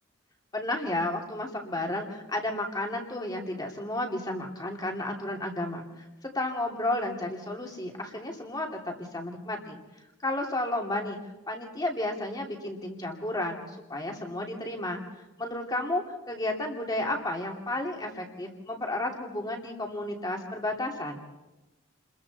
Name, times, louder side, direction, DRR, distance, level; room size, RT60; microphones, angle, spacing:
voice 1, 0.5-5.8 6.2-9.8 10.2-11.2 11.5-13.6 13.9-15.0 15.4-21.2, left 1 dB, 20° left, 1 dB, 2.8 m, -32 dB
29.5 x 22.0 x 4.2 m, 1.0 s
head